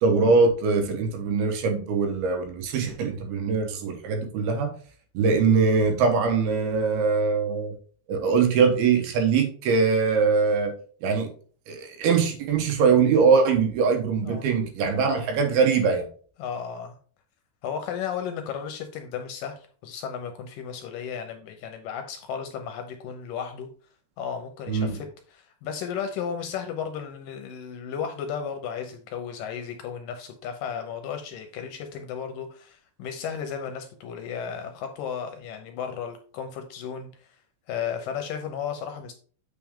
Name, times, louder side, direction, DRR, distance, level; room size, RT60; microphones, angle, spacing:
voice 1, 0.0-4.7 5.1-7.7 8.1-10.7 11.0-11.3 11.7-16.1 24.7-25.0, right 5 dB, 80° right, 5 dB, 3.1 m, -22 dB
voice 2, 16.4-17.0 17.6-23.7 24.2-37.3 37.7-39.1, left 7 dB, 75° left, 5 dB, 2.1 m, -34 dB
7.3 x 5.9 x 3.6 m, 0.44 s
omnidirectional pair, 4.5 m